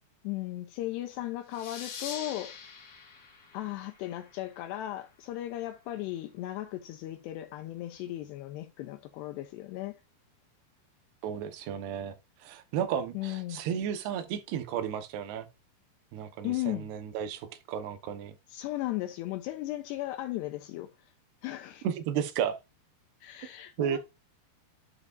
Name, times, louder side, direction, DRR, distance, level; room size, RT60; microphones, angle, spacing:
voice 1, 0.2-2.6 3.5-10.0 13.1-13.6 16.4-16.9 18.5-20.9 21.4-21.9 23.2-24.0, left 15 dB, 85° left, 2.5 m, -36 dB
sound 1, 1.5-4.8, left 6 dB, 50° left, 2.8 m, -44 dB
voice 2, 11.2-12.1 12.4-15.5 16.1-18.4 21.8-22.6 23.8-24.0, right 9 dB, 70° right, 2.7 m, -33 dB
11.0 x 4.9 x 2.5 m
omnidirectional pair, 5.6 m